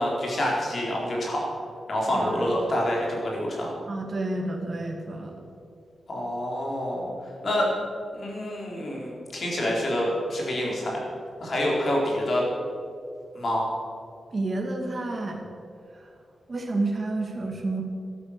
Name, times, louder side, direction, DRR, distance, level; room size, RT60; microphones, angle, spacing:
voice 1, 0.0-1.5 1.9-3.7 6.1-7.1 7.4-7.7 8.1-11.0 11.4-12.5 13.3-13.7, left 1 dB, 45° left, -3 dB, 4.3 m, -27 dB
voice 2, 2.1-2.5 3.9-5.3 14.3-15.4 15.9-16.1 16.5-17.8, right 2 dB, 30° right, 1 dB, 2.2 m, -30 dB
14.0 x 12.5 x 6.8 m, 2.4 s
wide cardioid pair, 165°, 0 cm